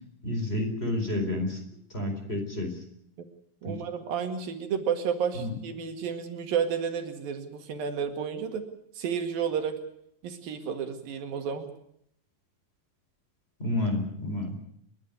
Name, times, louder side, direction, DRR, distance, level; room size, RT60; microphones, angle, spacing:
voice 1, 0.2-1.6 1.9-2.7 3.6-3.7 5.4-5.5 13.6-14.6, left 1 dB, 15° left, 3 dB, 4.3 m, -29 dB
voice 2, 3.6-8.7 9.0-9.8 10.2-11.7, right 7 dB, 85° right, 6 dB, 3.7 m, -31 dB
30.0 x 11.0 x 9.5 m, 0.73 s
omnidirectional pair, 4.0 m